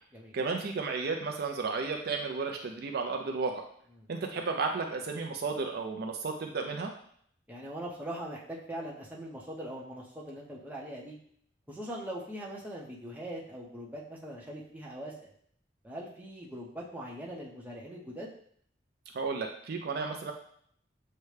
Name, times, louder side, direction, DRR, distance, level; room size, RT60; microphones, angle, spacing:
voice 1, 0.3-3.6 4.1-6.9 19.1-20.3, right 4 dB, 55° right, 3 dB, 0.4 m, -33 dB
voice 2, 7.5-11.2 11.7-15.3 15.8-18.3, right 1 dB, 10° right, -4 dB, 0.8 m, -41 dB
6.6 x 2.2 x 3.2 m, 0.63 s
head